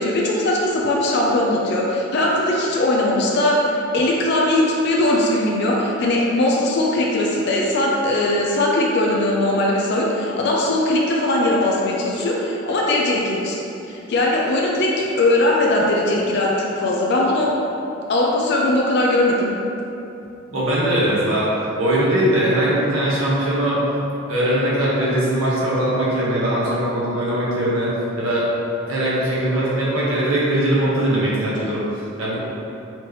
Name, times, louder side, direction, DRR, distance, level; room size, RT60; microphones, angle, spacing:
voice 1, 0.0-3.7 3.9-13.6 13.9-17.5 18.1-19.5, left 1 dB, 55° left, -3 dB, 0.5 m, -20 dB
voice 2, 20.5-21.5 21.8-23.8 24.3-27.9 28.2-28.5 28.9-31.8 32.2-32.4, right 1 dB, 80° right, -7 dB, 1.0 m, -20 dB
4.3 x 2.9 x 3.2 m, 2.8 s
head